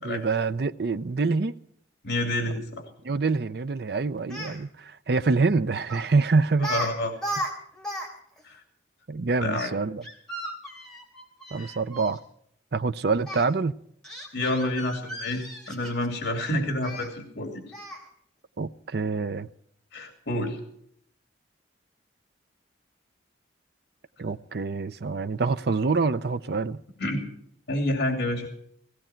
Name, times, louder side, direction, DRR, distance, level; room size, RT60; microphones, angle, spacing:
voice 1, 0.0-1.5 3.0-6.7 9.1-10.0 11.5-12.2 12.7-13.8 18.6-19.5 24.2-26.8, right 4 dB, 55° right, 0.5 m, -26 dB
voice 2, 2.0-2.8 6.6-7.1 8.4-8.6 9.4-9.7 11.6-11.7 14.3-17.6 19.9-20.6 27.0-27.2 27.7-28.5, left 1 dB, 80° left, 2.7 m, -28 dB
Speech, 4.2-4.6 5.9-6.1 6.6-6.9 7.2-8.1 8.4-8.5 10.0-12.2 13.2-13.4 14.0-16.2 16.8-17.1 17.7-18.1, right 1 dB, 5° left, 3.1 m, -35 dB
17.0 x 17.0 x 4.5 m
head